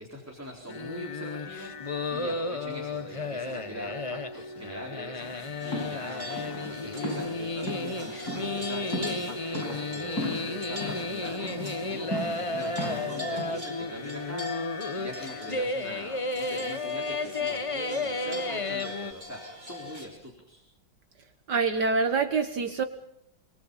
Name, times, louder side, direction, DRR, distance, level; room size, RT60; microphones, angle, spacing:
voice 1, 0.0-20.6, equal, 5° right, -1 dB, 4.2 m, -42 dB
sound 1, 0.7-19.1, left 2 dB, 25° left, 0.7 m, -33 dB
sound 2, 5.2-13.6, left 1 dB, 50° left, 8.0 m, -38 dB
sound 3, 5.6-20.1, left 3 dB, 35° right, 5.2 m, -42 dB
voice 2, 21.5-22.8, right 4 dB, 60° right, 9 dB, 1.8 m, -25 dB
26.0 x 23.5 x 5.6 m, 0.77 s
omnidirectional pair, 2.1 m